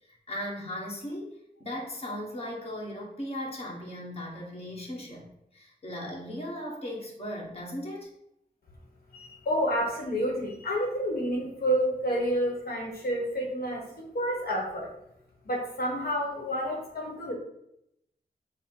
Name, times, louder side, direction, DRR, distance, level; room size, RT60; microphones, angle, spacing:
voice 1, 0.1-5.3 5.5-8.1, equal, 40° left, -2 dB, 1.2 m, -37 dB
voice 2, 9.1-14.9 15.4-17.3, equal, 80° left, -1 dB, 1.0 m, -29 dB
5.6 x 2.0 x 4.5 m, 0.79 s
wide cardioid pair, 110°, 16 cm